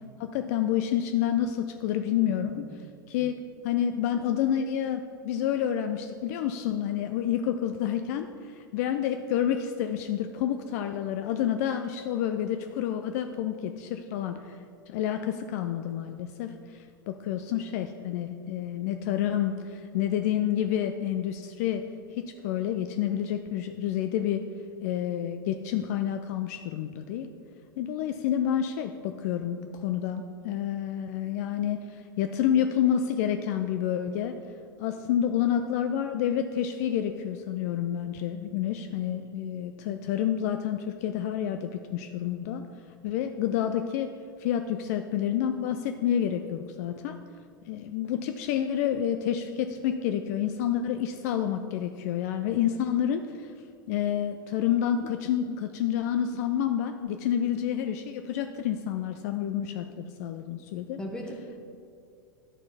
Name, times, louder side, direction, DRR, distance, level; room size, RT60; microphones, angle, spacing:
voice 1, 0.2-2.6 3.1-3.4 3.6-14.6 14.9-21.8 22.1-24.4 24.8-27.3 27.8-34.4 34.8-42.6 43.0-44.1 44.4-47.2 47.7-53.5 53.9-61.0, left 10 dB, 50° left, 7 dB, 0.4 m, -29 dB
voice 2, 2.3-2.8 61.0-61.6, equal, 10° left, 1 dB, 1.2 m, -39 dB
11.0 x 4.3 x 4.3 m, 2.3 s
figure-of-eight pair, 85°, 11 cm